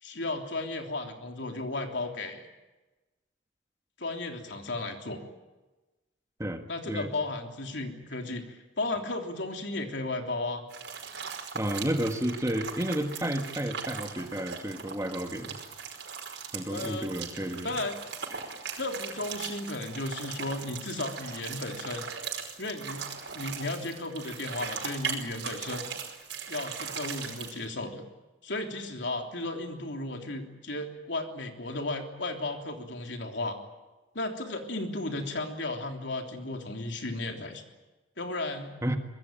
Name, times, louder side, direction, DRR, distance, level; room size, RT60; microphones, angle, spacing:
voice 1, 0.0-2.5 4.0-5.2 6.7-10.6 16.7-17.1 17.6-18.0 18.7-22.0 22.6-23.0 23.3-25.9 26.5-28.0 28.4-33.6 34.1-37.6 38.2-38.7, left 2 dB, 70° left, 4 dB, 3.4 m, -34 dB
sound 1, 10.7-27.6, right 6 dB, 65° right, 5.3 m, -39 dB
voice 2, 11.5-15.6 16.5-17.7 38.8-39.0, right 1 dB, 15° right, 5 dB, 1.7 m, -31 dB
24.5 x 21.0 x 9.1 m, 1.1 s
head